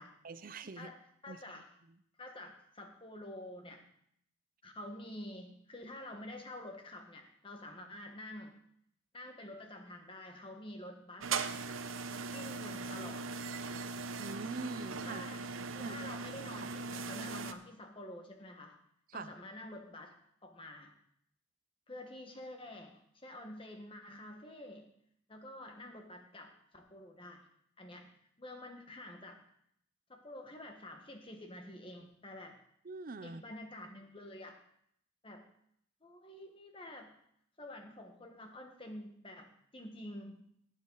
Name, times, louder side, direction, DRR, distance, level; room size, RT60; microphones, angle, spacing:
voice 1, 0.2-0.9 1.3-1.6 14.2-15.3 15.8-16.0 19.1-19.3 32.8-33.4, right 3 dB, 45° right, 13 dB, 0.6 m, -43 dB
voice 2, 0.8-1.7 2.2-3.8 4.6-8.6 9.1-11.3 12.3-13.3 15.0-15.4 15.7-18.8 19.1-20.1 20.4-20.9 21.9-24.9 25.3-27.4 27.8-28.1 28.4-29.4 30.1-32.6 33.2-34.6 35.2-35.4 36.0-37.1 37.6-40.5, left 1 dB, 25° left, 3 dB, 1.5 m, -48 dB
sound 1, 11.2-17.5, right 4 dB, 90° right, 0.8 m, -39 dB
17.5 x 7.6 x 4.0 m, 0.71 s
head